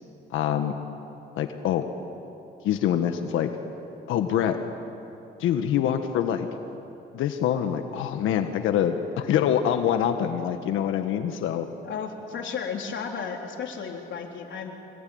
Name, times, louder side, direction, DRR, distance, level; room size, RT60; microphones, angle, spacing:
voice 1, 0.3-0.7 1.4-1.8 2.6-3.5 4.1-4.6 5.4-6.5 7.1-11.7, left 9 dB, 90° left, 6 dB, 1.4 m, -25 dB
voice 2, 11.8-14.7, left 6 dB, 70° left, 2 dB, 3.7 m, -33 dB
25.0 x 21.5 x 9.5 m, 2.9 s
cardioid pair, 90°, 20 cm